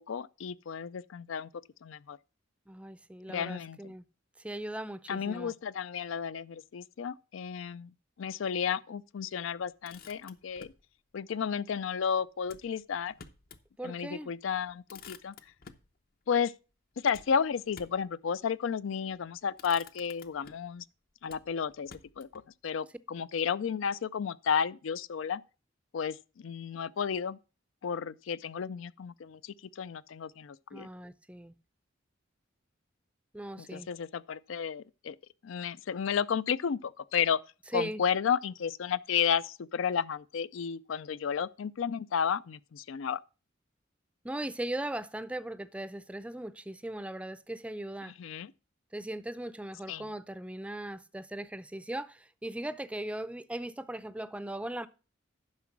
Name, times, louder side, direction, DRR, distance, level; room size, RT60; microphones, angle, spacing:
voice 1, 0.0-1.5 1.8-2.2 3.3-3.8 5.1-7.9 8.2-10.7 11.1-13.1 13.8-15.3 16.3-16.5 17.0-20.8 21.2-21.9 22.2-25.4 25.9-27.4 27.8-30.9 33.7-35.2 35.4-37.4 37.7-43.2 48.0-48.5 49.9-50.0, left 7 dB, 75° left, 0.4 m, -32 dB
voice 2, 2.7-4.1 4.4-5.5 13.8-14.3 30.7-31.5 33.3-33.9 37.7-38.0 44.2-48.1 48.9-54.9, right 1 dB, 5° right, 0.5 m, -38 dB
Motor vehicle (road), 9.6-10.9 12.4-13.7 14.1-14.2 14.5-15.9 17.1-18.1 19.0-19.2 19.5-20.8 21.3-22.5, left 6 dB, 50° left, 0.7 m, -53 dB
9.6 x 6.0 x 6.0 m
head